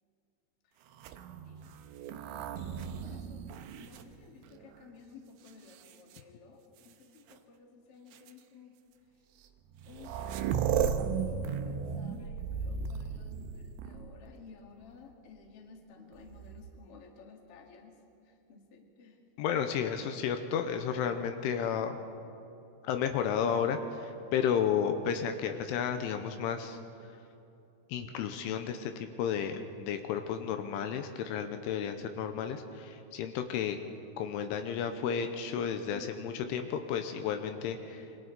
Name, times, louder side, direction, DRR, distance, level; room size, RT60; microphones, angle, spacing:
sound 1, 0.9-4.8 5.5-6.2 7.3-7.4 8.1-8.3 9.4-9.5 9.7-14.2 16.1-16.8, right 7 dB, 80° right, 2.8 m, -35 dB
voice 1, 1.5-3.4 3.8-8.7 9.9-10.7 11.3-19.2 35.9-36.2, left 5 dB, 50° left, 1 dB, 1.9 m, -55 dB
voice 2, 19.4-22.0 22.8-26.8 27.9-33.8 34.2-38.1, left 7 dB, 80° left, 7 dB, 3.1 m, -32 dB
27.5 x 24.0 x 4.1 m, 2.7 s
omnidirectional pair, 5.9 m